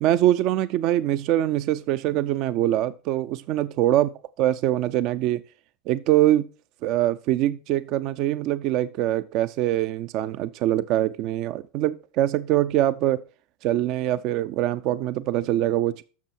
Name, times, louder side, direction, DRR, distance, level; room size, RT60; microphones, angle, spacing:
voice 1, 0.0-4.1 4.4-5.4 5.9-6.5 6.8-13.2 13.6-16.0, right 13 dB, 50° right, 0.5 m, -23 dB
12.0 x 6.8 x 4.5 m
hypercardioid pair, 90°, 0 cm